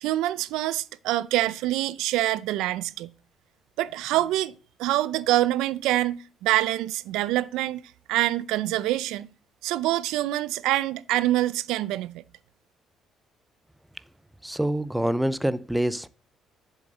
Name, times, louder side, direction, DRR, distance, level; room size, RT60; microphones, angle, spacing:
voice 1, 0.0-3.1 3.8-4.5 4.8-7.8 8.1-9.3 9.6-12.2, right 15 dB, 90° right, 0.5 m, -25 dB
voice 2, 14.4-16.1, right 1 dB, 5° right, 0.5 m, -26 dB
7.4 x 7.2 x 6.6 m
cardioid pair, 110°, 0 cm